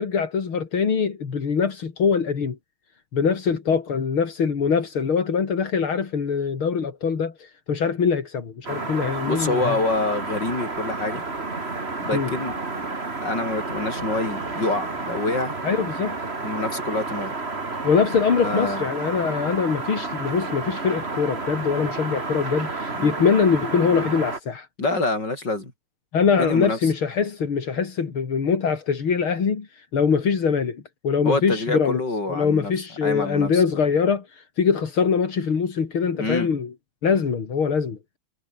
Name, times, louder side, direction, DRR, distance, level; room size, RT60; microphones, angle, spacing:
voice 1, 0.0-2.6 3.1-9.8 12.1-12.3 15.6-16.2 17.8-24.7 26.1-32.0 32.3-36.7 37.0-38.0, left 6 dB, 80° left, 3.5 m, -23 dB
sound 1, 8.6-24.4, right 3 dB, 30° right, 2.8 m, -31 dB
voice 2, 9.3-11.2 12.0-12.5 13.2-15.6 16.4-17.3 18.4-18.9 23.0-23.1 24.8-25.7 26.4-26.9 31.2-32.7 33.0-33.6 36.2-36.5, left 2 dB, 55° left, 7.5 m, -26 dB
omnidirectional pair, 2.3 m